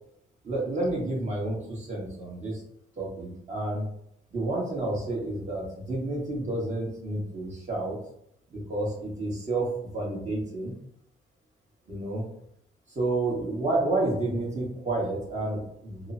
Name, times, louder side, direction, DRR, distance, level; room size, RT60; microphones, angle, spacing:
voice 1, 0.4-2.6 3.0-3.9 4.3-8.0 8.5-10.7 11.9-12.3 12.9-16.1, right 2 dB, 35° right, -3 dB, 1.2 m, -30 dB
3.0 x 2.0 x 2.5 m, 0.73 s
cardioid pair, 90°, 20 cm